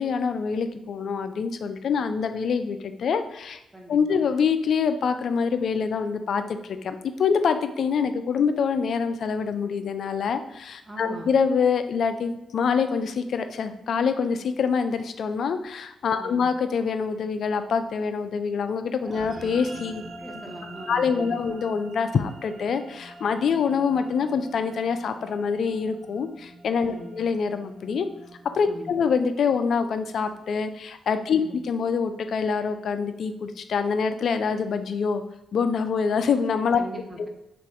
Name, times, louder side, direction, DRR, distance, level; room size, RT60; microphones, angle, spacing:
voice 1, 0.0-3.6 3.9-20.0 20.9-28.1 28.5-35.2 35.5-36.8, left 6 dB, 65° left, 9 dB, 0.3 m, -25 dB
voice 2, 3.7-4.2 10.9-11.3 16.2-16.5 20.2-21.6 26.8-27.2 28.7-29.0 31.3-31.6 36.8-37.3, right 1 dB, 20° right, 1 dB, 1.0 m, -40 dB
sound 1, 19.0-29.7, right 1 dB, 45° right, 1.0 m, -45 dB
3.3 x 2.5 x 4.3 m, 0.89 s
hypercardioid pair, 40°, 0 cm